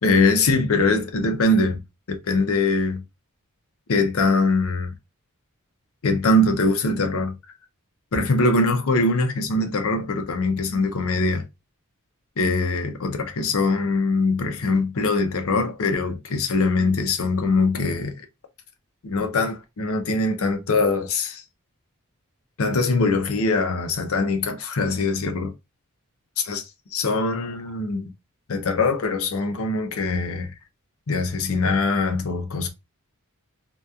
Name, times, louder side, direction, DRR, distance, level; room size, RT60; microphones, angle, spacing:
voice 1, 0.0-1.8 2.1-3.0 3.9-4.9 6.0-7.4 8.1-11.4 12.4-18.3 19.0-21.4 22.6-25.5 26.5-26.6 26.9-28.1 28.5-30.5 31.1-32.7, left 3 dB, 65° left, 0.6 m, -22 dB
2.8 x 2.2 x 2.2 m
head